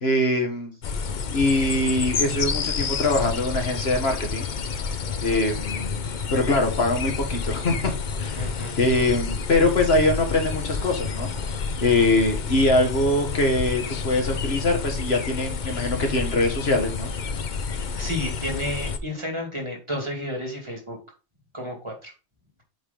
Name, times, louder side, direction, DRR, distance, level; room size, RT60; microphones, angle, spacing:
voice 1, 0.0-0.7 1.3-4.5 5.2-6.0 6.3-7.9 8.2-11.3 11.8-17.1, left 2 dB, 65° left, 4 dB, 1.7 m, -23 dB
sound 1, 0.8-19.0, left 5 dB, 50° left, 0.8 m, -29 dB
voice 2, 8.3-8.8 18.0-21.0 21.5-22.1, left 1 dB, 25° right, 1 dB, 2.4 m, -31 dB
8.0 x 3.5 x 5.2 m, 0.31 s
omnidirectional pair, 1.1 m